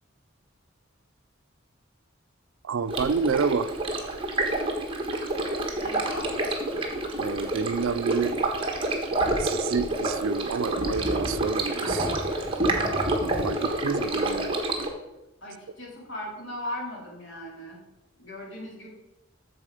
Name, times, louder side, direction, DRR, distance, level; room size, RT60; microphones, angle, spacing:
voice 1, 2.6-3.7 7.2-8.3 9.4-12.1 13.4-14.6, right 5 dB, 75° right, 14 dB, 0.4 m, -28 dB
Stream, 2.9-14.9, right 2 dB, 25° right, 1.4 m, -28 dB
voice 2, 5.8-6.3 15.4-17.8 18.2-18.9, left 1 dB, 65° left, -3 dB, 3.3 m, -38 dB
8.8 x 6.8 x 4.9 m, 0.98 s
head